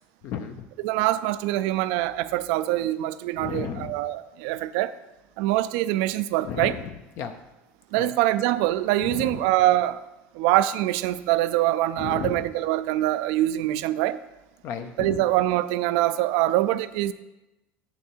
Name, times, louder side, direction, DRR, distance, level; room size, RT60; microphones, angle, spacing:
voice 1, 0.2-0.6 3.4-3.9 6.5-7.3 7.9-8.1 9.0-9.4 12.0-12.5 14.6-15.3, left 8 dB, 55° left, 7 dB, 0.6 m, -34 dB
voice 2, 0.8-4.9 5.4-6.8 7.9-10.0 10.3-14.2 15.0-17.1, right 15 dB, 75° right, 13 dB, 0.4 m, -24 dB
7.4 x 7.0 x 4.5 m, 1.0 s
cardioid pair, 145°, 5 cm